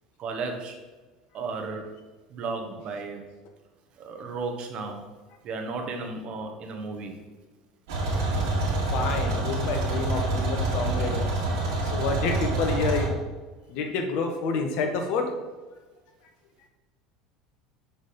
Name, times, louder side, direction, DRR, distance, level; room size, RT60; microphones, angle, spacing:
voice 1, 0.2-0.7 1.3-1.9 2.3-3.2 4.0-5.0 5.4-7.1, right 4 dB, 50° right, 3 dB, 1.5 m, -34 dB
sound 1, 7.9-13.1, right 2 dB, 75° right, 2.5 m, -27 dB
voice 2, 8.9-13.1 13.7-15.2, left 4 dB, 60° left, 4 dB, 1.4 m, -29 dB
7.1 x 4.5 x 5.4 m, 1.3 s
hypercardioid pair, 80°, 2 cm